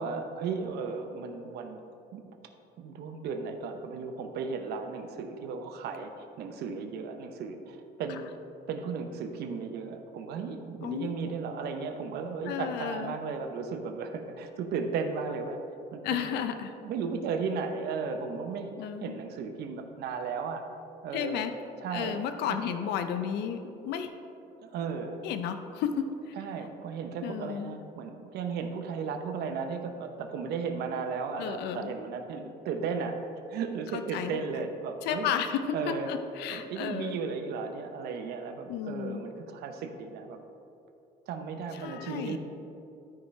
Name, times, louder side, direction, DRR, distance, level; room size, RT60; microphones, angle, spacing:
voice 1, 0.0-1.8 2.1-2.2 2.8-8.2 8.7-15.6 15.9-16.4 16.8-18.7 19.0-20.6 21.0-21.4 21.8-22.2 24.6-25.3 26.4-35.3 35.7-36.1 36.5-40.4 41.3-42.4, right 5 dB, 75° right, 5 dB, 0.8 m, -35 dB
voice 2, 10.8-11.3 12.5-13.2 16.0-16.7 18.8-19.2 21.1-21.5 21.9-24.1 25.2-26.3 27.2-27.8 31.4-31.9 33.9-34.4 35.0-37.2 38.7-39.2 41.7-42.4, left 8 dB, 80° left, 8 dB, 0.5 m, -33 dB
12.5 x 4.8 x 3.2 m, 2.8 s
cardioid pair, 110°, 17 cm